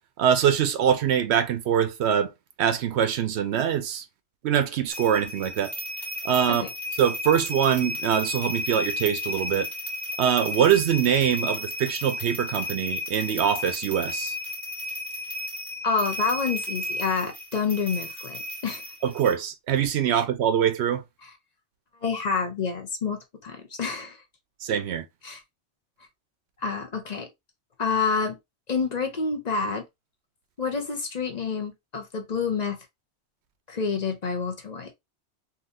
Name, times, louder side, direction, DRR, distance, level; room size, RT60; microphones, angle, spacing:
voice 1, 0.2-2.3 2.6-4.0 4.4-5.7 6.2-6.6 7.0-9.7 10.2-14.4 19.0-21.0 24.6-25.1, right 9 dB, 70° right, 0.8 m, -23 dB
sound 1, 4.9-19.3, left 2 dB, ahead, 1.5 m, -33 dB
voice 2, 15.8-18.8 20.1-20.2 22.0-24.2 25.2-25.4 26.6-27.3 27.8-28.4 28.7-29.8 30.6-32.8 33.7-34.9, left 5 dB, 40° left, 0.7 m, -28 dB
3.8 x 2.7 x 2.5 m
omnidirectional pair, 1.2 m